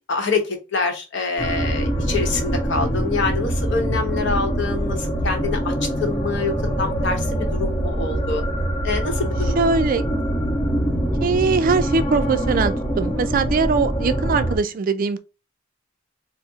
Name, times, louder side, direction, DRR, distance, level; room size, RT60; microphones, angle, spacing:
voice 1, 0.1-5.7 6.0-8.4 8.8-9.6, left 4 dB, 60° left, 0.9 m, -26 dB
sound 1, 1.4-14.6, right 1 dB, 25° left, 0.9 m, -24 dB
voice 2, 9.6-10.0 11.2-15.2, right 4 dB, 45° right, 0.3 m, -21 dB
4.3 x 2.0 x 3.5 m
head